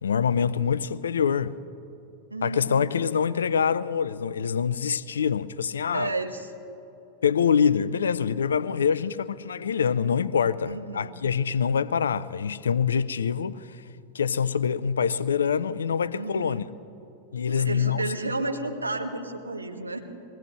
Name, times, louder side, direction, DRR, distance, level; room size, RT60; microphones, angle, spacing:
voice 1, 0.0-1.5 2.4-6.1 7.2-13.8 14.1-16.6 17.3-18.0, left 7 dB, 70° left, 0.4 m, -25 dB
voice 2, 2.3-2.9 5.9-6.5 10.7-11.1 16.1-16.6 17.5-20.0, right 2 dB, 80° right, 1.3 m, -32 dB
21.5 x 16.5 x 3.1 m
figure-of-eight pair, 90°, 0 cm